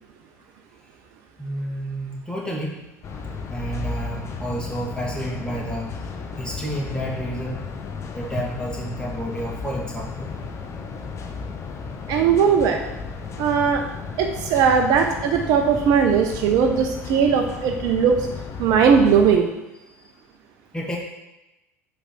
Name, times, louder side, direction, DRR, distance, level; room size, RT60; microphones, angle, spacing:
voice 1, 1.4-2.8 3.5-6.1 6.4-7.6 8.1-10.3 20.0-20.1 20.7-21.0, right 1 dB, 10° left, -3 dB, 2.1 m, -30 dB
sound 1, 3.0-19.4, left 5 dB, 35° left, 0.9 m, -34 dB
voice 2, 12.1-12.8 13.4-13.8 14.2-18.3 18.6-19.5, right 6 dB, 50° right, 4 dB, 0.7 m, -19 dB
8.1 x 3.5 x 5.8 m, 0.98 s
figure-of-eight pair, 65°, 8 cm